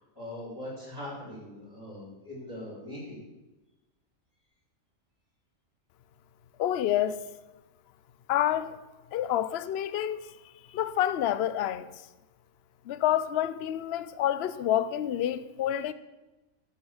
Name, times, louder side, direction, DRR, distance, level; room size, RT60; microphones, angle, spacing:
voice 1, 0.0-3.2, left 1 dB, 15° left, 4.5 m, -41 dB
voice 2, 6.6-7.2 8.3-8.8 9.1-10.3 10.7-11.9 12.9-15.9, left 11 dB, 60° left, 0.8 m, -28 dB
13.0 x 7.5 x 7.1 m
omnidirectional pair, 1.4 m